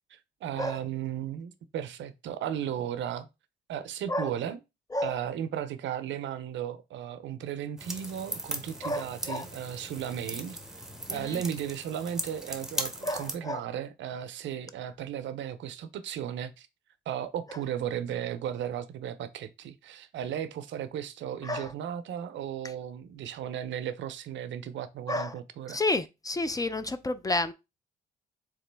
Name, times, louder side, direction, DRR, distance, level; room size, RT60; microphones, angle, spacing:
voice 1, 0.1-3.3 3.7-4.6 5.0-10.6 11.1-16.7 17.1-25.8, right 9 dB, 70° right, 0.5 m, -35 dB
voice 2, 4.9-5.2 8.8-9.5 11.1-11.4 13.0-13.6 17.5-17.6 21.4-21.7 22.6-22.7 25.1-25.3 25.7-27.5, left 2 dB, 20° left, 0.3 m, -31 dB
sound 1, 7.8-13.3, right 1 dB, 5° right, 0.7 m, -38 dB
3.7 x 2.9 x 3.3 m
cardioid pair, 90°, 20 cm